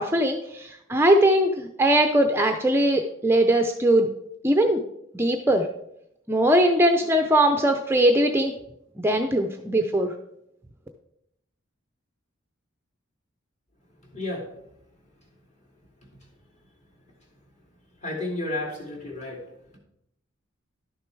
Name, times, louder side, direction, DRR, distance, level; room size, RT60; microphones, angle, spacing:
voice 1, 0.0-4.1 4.4-4.8 5.1-5.7 6.3-8.5 9.0-10.1, right 1 dB, 10° right, 5 dB, 0.5 m, -20 dB
voice 2, 18.0-19.4, left 2 dB, 35° left, -1 dB, 2.6 m, -31 dB
11.5 x 6.5 x 4.6 m, 0.78 s
head